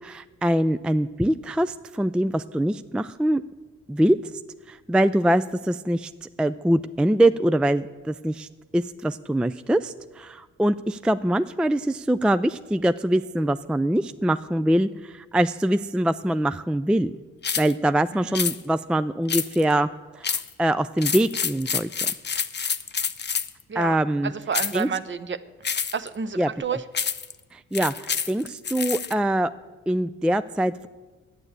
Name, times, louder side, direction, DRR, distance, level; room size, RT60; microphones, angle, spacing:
voice 1, 0.0-3.4 3.9-4.4 4.7-8.5 8.7-17.1 17.6-19.9 20.1-22.1 23.7-24.3 24.7-24.9 26.4-26.5 27.5-29.5 29.9-30.9, right 1 dB, 5° right, 12 dB, 0.3 m, -23 dB
sound 1, 17.4-17.7 18.3-18.6 19.3-19.7 20.2-20.5 21.0-23.6 24.5-24.8 25.6-26.1 26.9-27.3 27.7-29.1, left 6 dB, 35° left, 0.7 m, -27 dB
voice 2, 24.2-25.4 25.9-26.8, right 6 dB, 40° right, 12 dB, 0.8 m, -30 dB
11.0 x 8.8 x 8.1 m, 1.3 s
cardioid pair, 65°, 29 cm